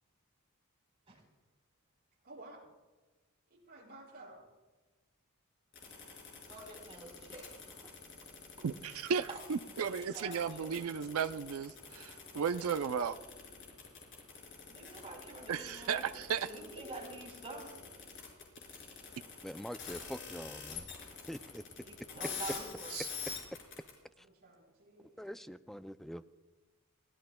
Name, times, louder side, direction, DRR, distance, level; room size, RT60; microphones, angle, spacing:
voice 1, 2.2-2.7 3.6-4.5 24.2-25.4, right 2 dB, 45° right, -4 dB, 5.8 m, -54 dB
sound 1, 5.8-23.9, left 6 dB, 60° left, 5.2 m, -46 dB
voice 2, 6.4-7.7 8.6-8.7 9.3-9.4 9.8-11.0 14.7-17.8 21.8-23.2, right 2 dB, 30° right, 0 dB, 4.2 m, -47 dB
voice 3, 8.6-13.2 15.5-16.5 22.9-23.1, right 6 dB, 70° right, 10 dB, 0.4 m, -35 dB
voice 4, 19.4-20.8 21.3-21.6 25.2-26.2, equal, ahead, 12 dB, 0.3 m, -44 dB
22.0 x 17.0 x 2.2 m, 1.2 s
head